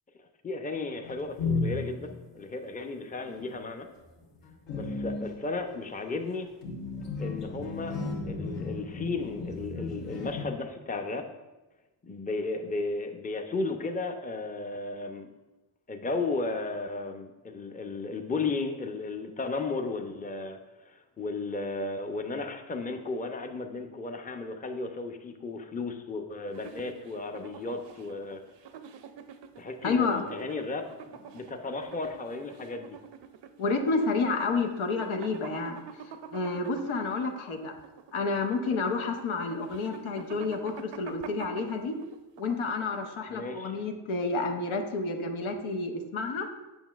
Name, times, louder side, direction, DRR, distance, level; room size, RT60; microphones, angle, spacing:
voice 1, 0.4-3.9 4.7-6.5 7.2-8.0 8.3-11.3 12.0-15.3 15.9-28.4 29.6-33.0 43.3-43.7, left 3 dB, 15° left, 5 dB, 0.6 m, -34 dB
sound 1, 1.0-2.2 3.2-3.6 4.0-10.4, left 3 dB, 60° left, 1.4 m, -34 dB
sound 2, 26.5-43.3, right 7 dB, 60° right, 0.6 m, -47 dB
voice 2, 29.8-30.2 33.6-35.8 36.3-37.8 38.1-42.0 42.4-46.5, left 3 dB, 80° left, 4 dB, 0.9 m, -30 dB
7.1 x 5.5 x 2.4 m, 1.1 s
supercardioid pair, 50°, 48 cm